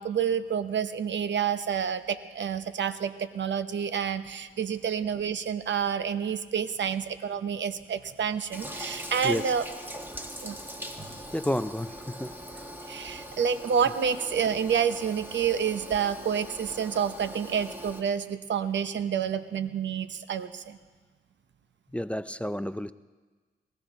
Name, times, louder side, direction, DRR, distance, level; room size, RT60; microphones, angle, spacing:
voice 1, 0.0-9.6 10.4-10.6 12.9-20.8, right 7 dB, 60° right, 0.9 m, -29 dB
Toilet flush, 8.5-18.0, equal, 10° right, 1.8 m, -41 dB
voice 2, 11.3-12.8 21.9-22.9, left 1 dB, 5° left, 0.5 m, -31 dB
19.5 x 14.0 x 3.9 m
supercardioid pair, 50°, 21 cm